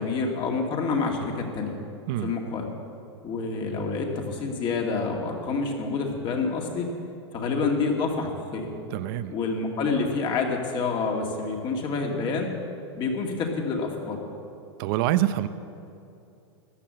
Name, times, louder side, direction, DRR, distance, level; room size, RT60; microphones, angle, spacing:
voice 1, 0.0-1.7 2.2-2.7 3.2-6.9 7.3-8.7 9.3-12.5 12.9-14.2, left 4 dB, 35° left, 1 dB, 2.4 m, -28 dB
voice 2, 8.9-9.3 14.8-15.5, right 14 dB, 55° right, 12 dB, 0.8 m, -25 dB
14.0 x 10.0 x 7.6 m, 2.6 s
hypercardioid pair, 125°, 14 cm